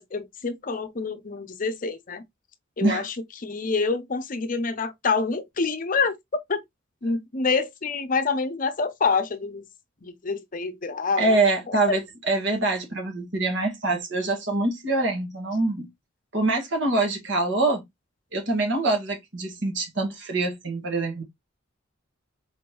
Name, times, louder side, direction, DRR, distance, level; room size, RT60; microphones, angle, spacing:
voice 1, 0.0-2.2 2.8-6.2 6.5-6.6 7.0-9.6 10.0-11.4 11.7-12.0, left 4 dB, 40° left, 0.6 m, -27 dB
voice 2, 11.2-12.0 12.3-15.9 16.3-17.8 18.3-21.2, right 2 dB, 60° right, 1.8 m, -24 dB
4.2 x 3.5 x 3.0 m
head